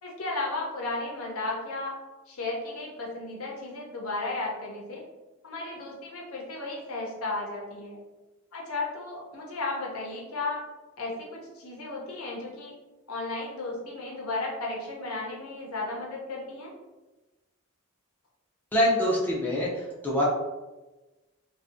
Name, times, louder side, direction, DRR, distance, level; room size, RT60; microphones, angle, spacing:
voice 1, 0.0-2.0 2.3-5.0 5.4-8.0 8.5-10.6 11.0-12.7 13.1-16.7, left 2 dB, 75° left, -2 dB, 0.7 m, -34 dB
voice 2, 18.7-20.2, left 1 dB, 10° left, -5 dB, 0.4 m, -25 dB
2.5 x 2.2 x 2.5 m, 1.1 s
head